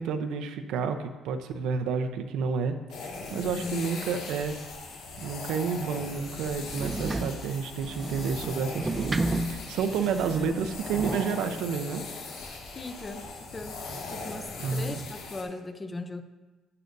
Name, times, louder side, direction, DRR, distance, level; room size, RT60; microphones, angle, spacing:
voice 1, 0.0-2.8 3.0-4.6 5.2-9.2 9.5-12.0 14.6-15.0, right 6 dB, 85° right, 7 dB, 0.7 m, -30 dB
sound 1, 2.9-15.4, left 3 dB, 85° left, 1.9 m, -39 dB
voice 2, 3.3-3.8 10.4-10.7 12.7-13.8 14.1-16.2, left 3 dB, 20° left, 8 dB, 0.6 m, -38 dB
sound 2, 6.3-11.3, right 2 dB, 20° right, 0.4 m, -33 dB
11.0 x 8.2 x 2.7 m, 1.2 s
cardioid pair, 130°, 0 cm